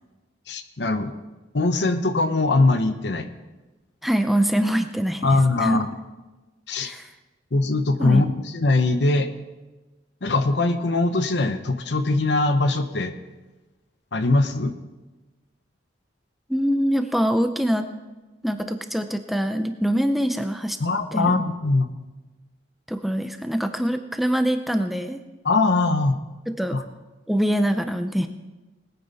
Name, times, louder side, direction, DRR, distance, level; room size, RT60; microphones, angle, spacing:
voice 1, 0.5-1.2 1.5-3.3 5.2-5.9 6.7-6.9 7.5-9.3 10.2-13.1 14.1-14.7 20.8-21.9 25.4-26.2 26.7-26.8, left 2 dB, 65° left, 9 dB, 0.9 m, -21 dB
voice 2, 4.0-5.3 5.6-5.8 6.8-7.1 8.0-8.2 16.5-17.9 18.4-20.8 21.1-21.4 22.9-25.2 26.5-26.8 27.3-28.3, equal, ahead, 7 dB, 0.5 m, -24 dB
20.0 x 9.3 x 4.2 m, 1.2 s
head